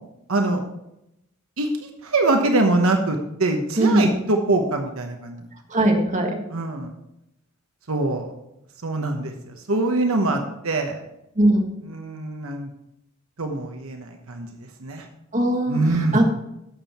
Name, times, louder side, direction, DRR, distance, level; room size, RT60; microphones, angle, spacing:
voice 1, 0.3-0.6 1.6-5.5 6.5-6.9 7.9-8.3 8.8-11.0 11.9-12.7 13.4-15.1 15.7-16.2, right 2 dB, 70° right, 4 dB, 1.1 m, -23 dB
voice 2, 3.8-4.2 5.7-6.4 11.3-11.7 15.3-16.2, right 1 dB, 35° right, 2 dB, 1.5 m, -20 dB
11.5 x 7.3 x 4.3 m, 0.84 s
head